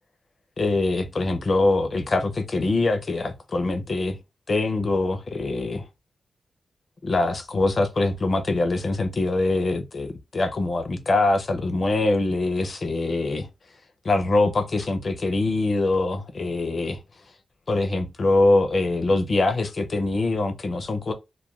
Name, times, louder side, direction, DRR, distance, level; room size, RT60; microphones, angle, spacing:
voice 1, 0.6-4.2 4.5-5.8 7.0-13.5 14.0-17.0 17.7-21.1, left 2 dB, 40° left, 0.5 m, -23 dB
2.3 x 2.2 x 2.9 m
wide cardioid pair, 175°, 0 cm